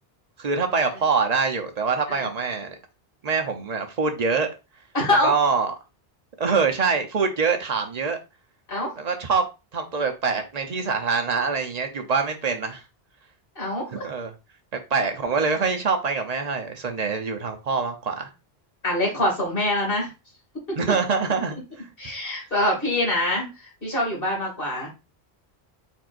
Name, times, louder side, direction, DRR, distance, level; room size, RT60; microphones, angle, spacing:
voice 1, 0.4-2.8 3.2-4.5 5.2-5.7 6.4-8.2 9.0-9.4 9.7-12.8 13.9-14.3 14.9-18.3 20.8-21.9, right 5 dB, 45° right, 0.8 m, -24 dB
voice 2, 4.9-5.3 8.7-8.9 13.6-14.0 18.8-20.1 22.0-24.9, left 1 dB, 60° left, 2.5 m, -24 dB
4.5 x 4.4 x 2.5 m
omnidirectional pair, 1.1 m